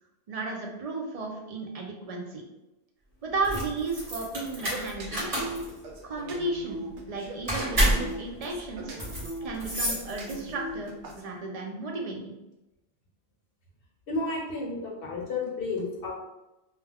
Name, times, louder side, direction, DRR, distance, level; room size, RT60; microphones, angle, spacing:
voice 1, 0.3-2.4 3.2-5.5 6.0-9.0 9.4-12.4, right 3 dB, 60° right, 1 dB, 0.4 m, -34 dB
sound 1, 3.3-10.7, right 1 dB, 35° right, 0.9 m, -30 dB
sound 2, 4.4-11.2, right 2 dB, 85° right, 0.9 m, -40 dB
voice 2, 14.1-16.1, left 3 dB, 60° left, -1 dB, 0.9 m, -32 dB
2.2 x 2.2 x 3.3 m, 0.96 s
omnidirectional pair, 1.1 m